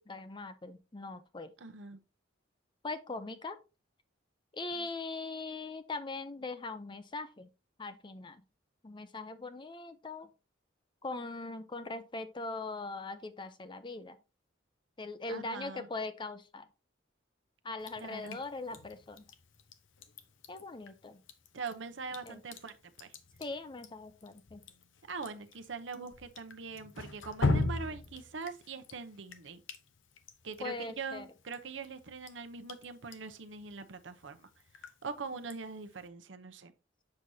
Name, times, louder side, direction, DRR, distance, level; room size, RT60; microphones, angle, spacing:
voice 1, 0.0-1.5 2.8-3.6 4.5-7.5 7.8-8.4 8.8-10.3 11.0-14.2 15.0-16.7 17.6-19.3 20.5-21.2 22.3-22.4 23.4-24.6 30.6-31.3, left 3 dB, 25° left, 0.6 m, -41 dB
voice 2, 1.6-2.0 4.7-4.9 15.3-15.9 18.0-18.4 21.5-23.1 25.1-29.6 30.4-34.5 34.8-36.7, right 4 dB, 75° right, 0.8 m, -43 dB
Drip, 17.8-36.1, left 2 dB, 85° left, 0.8 m, -41 dB
7.5 x 6.2 x 2.7 m
head